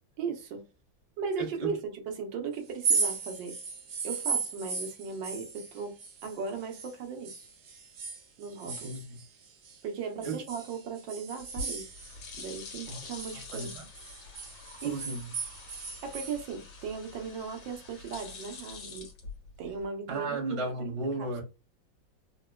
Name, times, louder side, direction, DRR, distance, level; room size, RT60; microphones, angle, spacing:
voice 1, 0.2-0.6 1.2-3.6 4.0-6.0 6.2-7.5 8.4-9.0 9.8-11.9 12.4-13.7 14.8-15.0 16.0-19.1 19.6-21.3, right 5 dB, 80° right, 1.5 m, -37 dB
voice 2, 1.4-1.8 8.6-9.2 10.2-10.4 12.9-13.0 13.5-13.8 14.8-15.3 20.1-21.4, right 2 dB, 20° right, 0.8 m, -35 dB
sound 1, 2.7-6.9 7.2-9.8 10.2-12.6 12.9-16.4, right 5 dB, 60° right, 1.3 m, -35 dB
sound 2, 11.4-19.9, left 3 dB, 75° left, 1.7 m, -46 dB
3.9 x 2.2 x 2.2 m
omnidirectional pair, 2.0 m